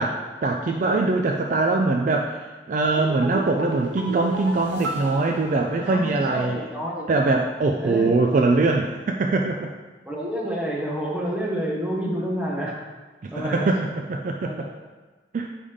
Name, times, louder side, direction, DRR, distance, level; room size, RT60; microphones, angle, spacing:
voice 1, 0.0-6.6 7.1-9.7 13.2-14.7 15.3-15.5, right 3 dB, 45° right, 2 dB, 0.3 m, -22 dB
sound 1, 2.8-6.3 6.6-6.7, right 1 dB, 80° right, 0.8 m, -33 dB
voice 2, 5.9-7.1 7.8-8.1 10.1-12.7 13.3-13.7 14.4-14.7, equal, 5° right, -4 dB, 1.0 m, -28 dB
5.0 x 3.4 x 5.5 m, 1.3 s
head